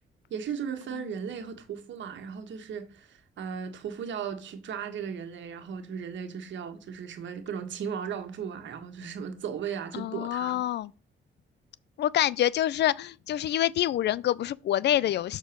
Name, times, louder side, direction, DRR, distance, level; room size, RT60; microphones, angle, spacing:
voice 1, 0.3-10.7, right 7 dB, 70° right, 1.5 m, -36 dB
voice 2, 9.9-10.9 12.0-15.4, left 12 dB, 60° left, 0.4 m, -26 dB
6.9 x 4.4 x 5.9 m
cardioid pair, 90°, 20 cm